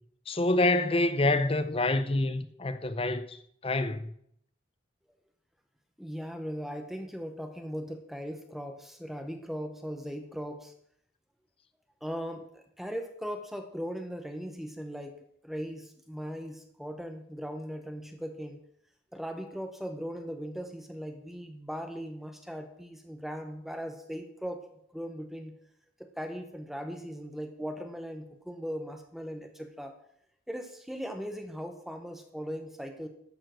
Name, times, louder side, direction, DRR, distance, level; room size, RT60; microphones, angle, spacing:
voice 1, 0.3-4.1, left 2 dB, 30° left, 0.7 m, -27 dB
voice 2, 6.0-10.7 12.0-18.6 19.1-24.7 24.9-25.5 26.0-29.9 30.5-33.1, equal, ahead, 0.9 m, -39 dB
13.0 x 7.2 x 6.3 m
head